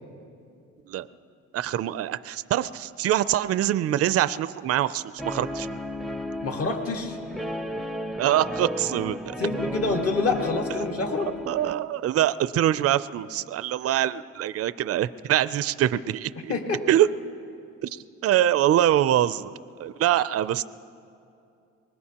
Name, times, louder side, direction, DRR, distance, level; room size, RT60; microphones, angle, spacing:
voice 1, 1.5-5.8 8.2-9.2 11.5-16.5 16.9-17.1 17.8-19.5 19.8-20.6, right 12 dB, 50° right, 15 dB, 0.4 m, -24 dB
Guitar, 5.2-11.7, left 1 dB, ahead, 0.6 m, -33 dB
voice 2, 6.4-7.2 9.4-11.3 16.5-16.8, left 3 dB, 50° left, 2 dB, 1.7 m, -27 dB
24.0 x 20.0 x 2.9 m, 2.5 s
cardioid pair, 90°, 30 cm